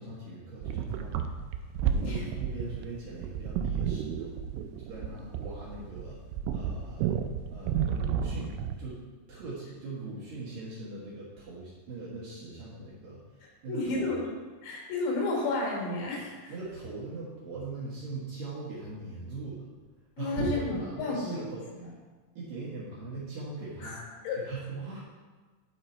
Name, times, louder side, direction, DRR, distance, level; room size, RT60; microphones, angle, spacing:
voice 1, 0.0-1.6 2.0-4.3 4.8-6.2 6.5-7.1 7.5-9.0 9.3-14.2 16.5-19.6 20.2-21.9 22.4-24.0 24.4-25.0, right 3 dB, 60° right, -7 dB, 2.6 m, -40 dB
sound 1, 0.6-8.9, right 8 dB, 85° right, 2.9 m, -32 dB
voice 2, 13.7-14.3 14.6-16.4 20.2-21.5 21.8-21.9 23.8-24.4, left 3 dB, 70° left, -2 dB, 3.5 m, -32 dB
11.0 x 4.9 x 4.3 m, 1.3 s
omnidirectional pair, 5.6 m